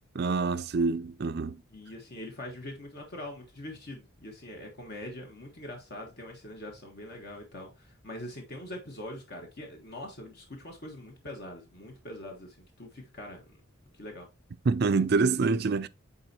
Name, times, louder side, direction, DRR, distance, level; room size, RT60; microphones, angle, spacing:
voice 1, 0.2-1.6 14.7-15.9, right 4 dB, 50° right, 0.4 m, -26 dB
voice 2, 1.7-13.6 13.9-14.3, left 1 dB, 50° left, 1.4 m, -43 dB
8.9 x 4.1 x 2.8 m
head